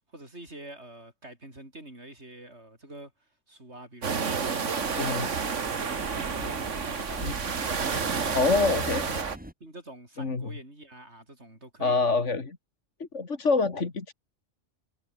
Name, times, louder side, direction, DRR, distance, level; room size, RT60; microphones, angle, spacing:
voice 1, 0.1-5.1 5.9-9.1 9.6-12.0, right 1 dB, 65° right, 7.9 m, -46 dB
sound 1, 4.0-9.4, right 5 dB, 80° right, 2.0 m, -30 dB
sound 2, 4.1-9.5, right 1 dB, 5° right, 2.2 m, -42 dB
voice 2, 5.0-5.3 6.4-6.5 7.2-7.3 8.4-9.0 10.2-10.5 11.8-12.6 13.0-14.1, left 4 dB, 75° left, 2.7 m, -26 dB
omnidirectional pair, 1.3 m